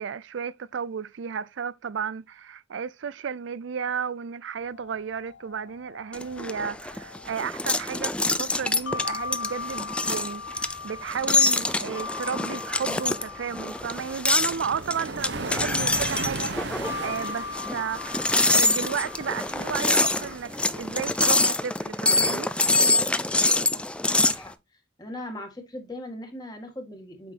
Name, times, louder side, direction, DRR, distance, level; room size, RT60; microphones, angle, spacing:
voice 1, 0.0-22.5, right 7 dB, 85° right, 0.4 m, -33 dB
sound 1, 4.6-20.4, left 5 dB, 70° left, 0.5 m, -40 dB
sound 2, 6.1-24.4, left 2 dB, 5° left, 0.4 m, -25 dB
sound 3, 14.3-21.4, right 3 dB, 65° right, 0.9 m, -37 dB
voice 2, 23.7-24.5 25.0-27.3, left 1 dB, 20° left, 1.9 m, -39 dB
8.3 x 5.9 x 2.8 m
head